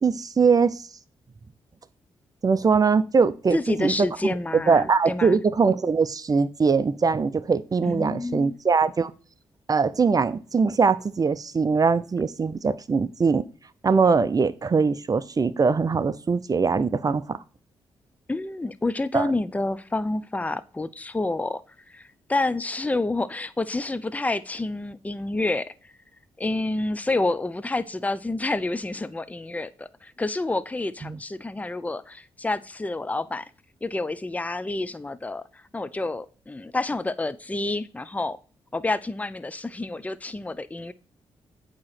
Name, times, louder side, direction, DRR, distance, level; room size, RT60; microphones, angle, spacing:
voice 1, 0.0-0.9 2.4-3.9 4.5-9.1 9.7-13.4 13.8-17.4 19.1-19.3 31.0-31.2, right 5 dB, 35° right, 0.6 m, -22 dB
voice 2, 3.5-5.4 7.8-8.6 18.3-21.6 21.9-25.9 26.4-33.5 33.8-38.4 38.7-40.9, left 2 dB, 15° left, 0.5 m, -29 dB
8.5 x 3.0 x 4.2 m
supercardioid pair, 50°, 10 cm